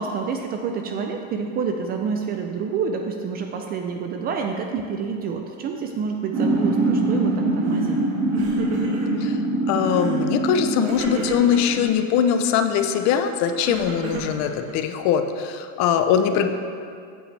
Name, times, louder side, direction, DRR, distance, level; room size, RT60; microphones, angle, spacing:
voice 1, 0.0-8.0 16.3-16.5, right 5 dB, 25° right, 4 dB, 0.4 m, -28 dB
sound 1, 6.3-11.9, right 2 dB, 45° right, 1.5 m, -23 dB
Crying sobbing, 7.7-8.0 8.3-9.3 9.8-10.3 10.8-11.9 12.7-15.0, right 2 dB, 75° right, 2.0 m, -34 dB
voice 2, 9.7-16.5, left 8 dB, 45° left, 8 dB, 0.6 m, -21 dB
8.6 x 8.2 x 3.2 m, 2.3 s
supercardioid pair, 145°, 38 cm